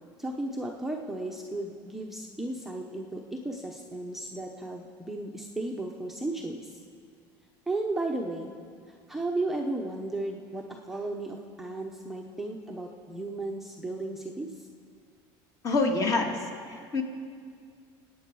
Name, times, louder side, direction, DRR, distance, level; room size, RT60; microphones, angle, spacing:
voice 1, 0.2-6.8 7.7-8.5 8.9-14.7, right 2 dB, 5° right, 0 dB, 0.8 m, -34 dB
voice 2, 15.6-17.0, left 3 dB, 35° left, 3 dB, 1.8 m, -27 dB
24.5 x 9.1 x 4.7 m, 2.2 s
cardioid pair, 150°, 10 cm